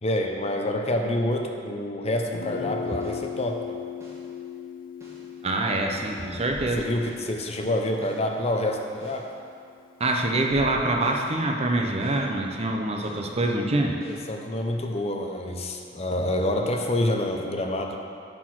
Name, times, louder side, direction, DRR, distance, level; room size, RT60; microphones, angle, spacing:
voice 1, 0.0-3.8 5.7-5.8 6.7-9.3 14.1-18.0, left 1 dB, 35° left, 2 dB, 0.7 m, -27 dB
Guitar, 2.3-10.0, left 7 dB, 50° left, 0.3 m, -39 dB
sound 1, 3.0-3.3 4.0-4.3 5.0-5.3 6.0-7.3 8.0-8.3 9.0-9.3 10.0-11.3 12.0-12.3 13.0-13.3 14.0-14.3, equal, 15° right, 2.0 m, -47 dB
voice 2, 5.4-6.9 10.0-14.0, right 2 dB, 35° right, 2 dB, 0.7 m, -25 dB
9.8 x 4.7 x 6.1 m, 2.3 s
head